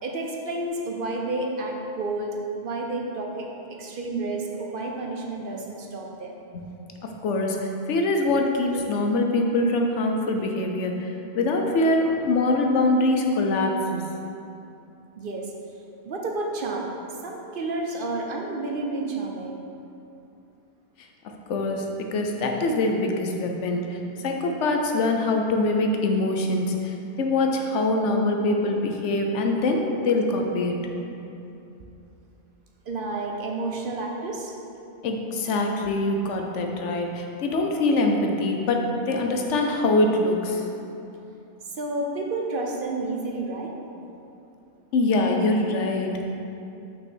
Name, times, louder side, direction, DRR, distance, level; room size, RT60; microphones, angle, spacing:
voice 1, 0.0-6.4 15.2-15.5 16.0-16.9 17.2-19.6 32.9-34.5 41.8-43.7, right 2 dB, 55° right, 0 dB, 0.8 m, -30 dB
voice 2, 7.2-11.1 11.3-14.0 21.5-21.9 22.1-30.8 35.0-40.6 44.9-46.2, left 2 dB, 85° left, 2 dB, 1.1 m, -24 dB
5.8 x 5.5 x 4.4 m, 2.8 s
omnidirectional pair, 1.2 m